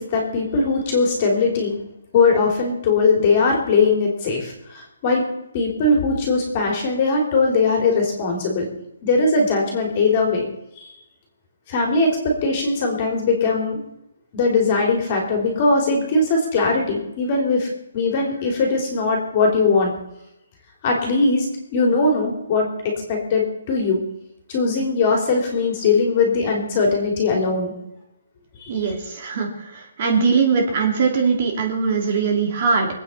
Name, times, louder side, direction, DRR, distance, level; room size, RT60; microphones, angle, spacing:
voice 1, 0.0-1.7 2.1-5.2 5.5-8.7 9.0-10.5 11.7-13.8 14.3-19.9 20.8-21.5 21.7-24.0 24.5-27.7 28.9-29.0, left 3 dB, 25° left, 1 dB, 3.6 m, -20 dB
voice 2, 28.7-32.9, right 5 dB, 30° right, 1 dB, 2.7 m, -21 dB
23.5 x 9.1 x 5.7 m, 0.85 s
hypercardioid pair, 175°, 0 cm